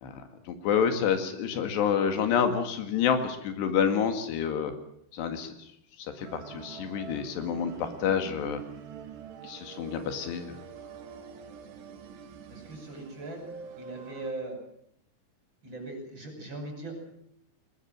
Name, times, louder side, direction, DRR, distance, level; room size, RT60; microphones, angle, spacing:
voice 1, 0.0-4.7 5.1-5.5 6.0-8.6 9.4-10.6, left 7 dB, 90° left, 7 dB, 4.1 m, -28 dB
sound 1, 6.2-14.3, right 7 dB, 90° right, 4.1 m, -45 dB
voice 2, 12.5-13.5 13.8-14.6 15.6-17.0, right 2 dB, 25° right, 3 dB, 6.5 m, -39 dB
21.0 x 20.5 x 7.5 m, 0.72 s
omnidirectional pair, 4.7 m